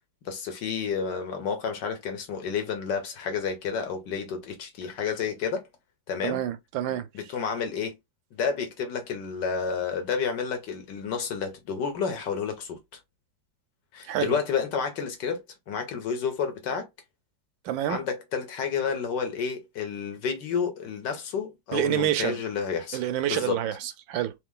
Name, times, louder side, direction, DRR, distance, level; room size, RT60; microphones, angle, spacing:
voice 1, 0.2-5.7 6.1-6.4 7.1-8.0 8.3-12.8 13.9-16.9 17.9-23.0 23.3-23.6, left 6 dB, 65° left, 1.6 m, -30 dB
voice 2, 6.2-7.1 14.1-14.4 17.6-18.0 21.7-22.4 22.9-24.3, right 12 dB, 80° right, 1.4 m, -28 dB
3.9 x 3.0 x 3.7 m
omnidirectional pair, 2.1 m